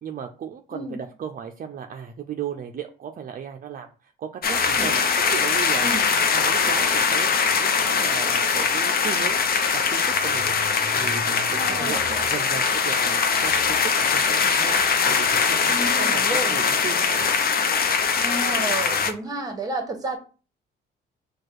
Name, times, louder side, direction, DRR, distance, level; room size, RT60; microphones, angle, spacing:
voice 1, 0.0-5.0 5.2-5.9 6.3-9.5 9.7-10.5 11.0-14.8 15.1-17.3, right 8 dB, 45° right, 4 dB, 0.5 m, -35 dB
sound 1, 4.4-19.1, left 5 dB, 50° left, 0.7 m, -22 dB
voice 2, 4.6-5.0 5.8-6.1 11.5-12.0 15.7-16.6 18.2-20.2, right 2 dB, 20° right, 5 dB, 1.3 m, -31 dB
4.6 x 2.4 x 4.6 m, 0.36 s
cardioid pair, 90°, 20 cm